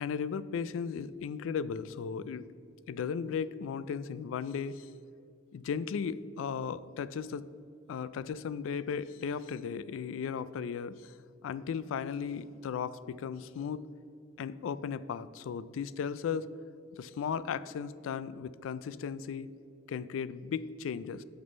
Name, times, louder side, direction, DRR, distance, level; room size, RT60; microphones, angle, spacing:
voice 1, 0.0-2.5 2.9-4.9 5.5-7.4 7.9-11.1 11.4-13.8 14.4-16.5 16.9-19.5 19.9-21.2, left 6 dB, 85° left, 17 dB, 0.3 m, -36 dB
6.3 x 6.1 x 5.2 m, 2.5 s
head